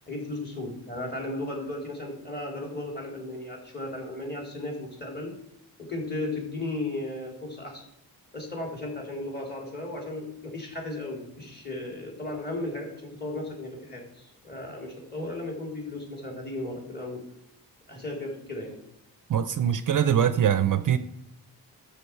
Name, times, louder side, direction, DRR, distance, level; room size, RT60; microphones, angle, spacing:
voice 1, 0.1-5.3 5.8-7.8 8.3-17.2 17.9-18.8, left 2 dB, 25° left, 0 dB, 3.5 m, -35 dB
voice 2, 19.3-21.0, right 9 dB, 55° right, 12 dB, 0.6 m, -23 dB
12.5 x 7.0 x 4.6 m, 0.79 s
wide cardioid pair, 125°, 39 cm